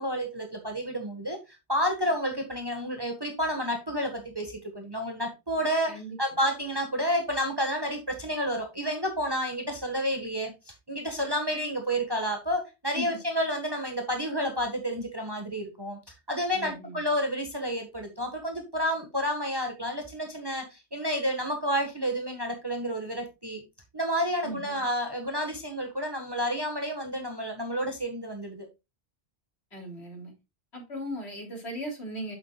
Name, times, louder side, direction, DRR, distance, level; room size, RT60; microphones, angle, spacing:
voice 1, 0.0-1.4 1.7-5.9 6.2-10.5 10.9-16.0 16.3-23.6 23.9-28.7, equal, 20° right, 1.5 m, -30 dB
voice 2, 5.9-6.2 12.9-13.0 16.5-17.0 24.4-24.8 29.7-30.3 30.7-32.3, equal, 75° left, 3.5 m, -37 dB
8.6 x 7.4 x 2.3 m
omnidirectional pair, 1.1 m